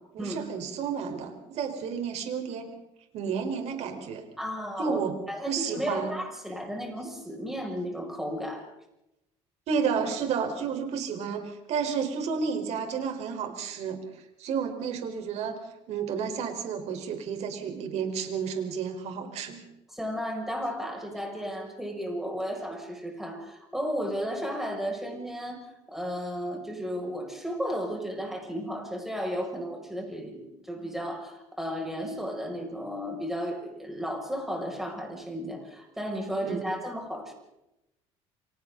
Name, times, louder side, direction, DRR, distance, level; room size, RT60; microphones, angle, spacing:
voice 1, 0.1-2.7 3.1-4.2 4.8-5.2 5.4-6.2 9.7-14.0 14.4-15.6 15.9-19.6 36.4-36.6, right 6 dB, 60° right, 5 dB, 4.5 m, -31 dB
voice 2, 4.4-5.0 5.3-8.7 19.9-25.6 25.9-37.3, equal, 5° right, 1 dB, 6.6 m, -34 dB
30.0 x 24.5 x 4.0 m, 0.87 s
cardioid pair, 125°, 12 cm